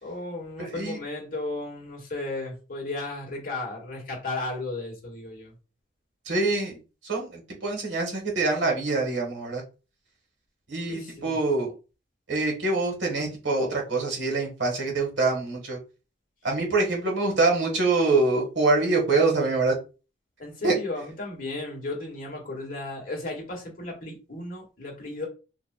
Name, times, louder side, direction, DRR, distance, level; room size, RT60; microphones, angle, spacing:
voice 1, 0.0-5.5 10.9-11.4 20.4-25.3, left 2 dB, 50° left, 1.6 m, -34 dB
voice 2, 0.6-1.0 6.3-6.8 7.0-9.6 10.7-11.7 12.3-15.8 16.4-19.7 20.6-20.7, right 3 dB, 75° right, 1.5 m, -25 dB
5.0 x 2.7 x 2.3 m
head